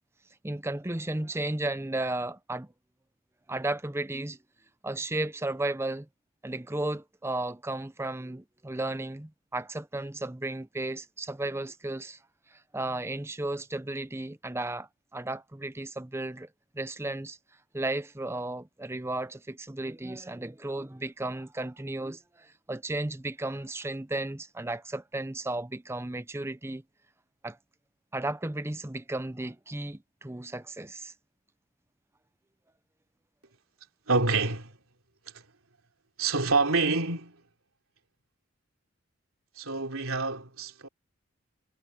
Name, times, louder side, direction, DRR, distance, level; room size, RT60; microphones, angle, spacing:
voice 1, 0.4-2.7 3.5-4.4 4.8-6.1 6.4-12.2 12.7-16.5 16.7-17.4 17.7-26.8 27.4-27.6 28.1-31.1, right 2 dB, 10° right, 0.6 m, -34 dB
voice 2, 34.1-34.7 36.2-37.4 39.6-40.9, right 3 dB, 80° right, 3.4 m, -27 dB
head